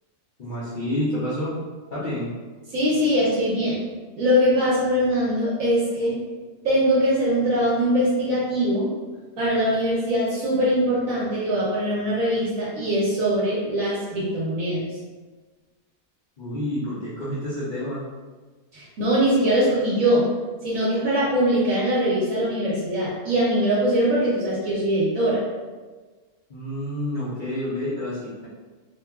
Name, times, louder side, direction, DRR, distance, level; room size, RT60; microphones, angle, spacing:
voice 1, 0.4-1.6 1.9-2.3 16.4-18.0 26.5-28.5, left 1 dB, 85° left, -10 dB, 0.4 m, -29 dB
voice 2, 2.7-3.8 4.1-6.2 6.6-8.9 9.4-14.8 18.7-20.3 20.6-25.4, equal, 65° right, -8 dB, 1.1 m, -22 dB
3.2 x 2.3 x 2.2 m, 1.3 s
omnidirectional pair, 1.6 m